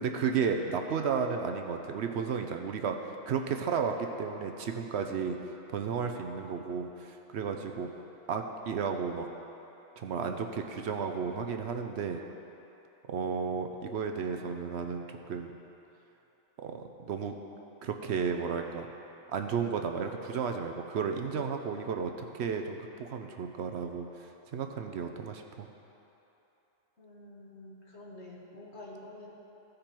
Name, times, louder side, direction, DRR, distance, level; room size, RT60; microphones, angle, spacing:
voice 1, 0.0-5.4 5.7-7.9 8.3-9.3 10.0-12.2 13.1-15.5 16.6-17.3 17.8-18.9 19.3-24.1 24.5-25.7, right 6 dB, 65° right, 5 dB, 0.8 m, -33 dB
voice 2, 27.0-29.3, left 1 dB, 55° left, -3 dB, 1.5 m, -48 dB
15.5 x 5.2 x 4.4 m, 3.0 s
omnidirectional pair, 1.4 m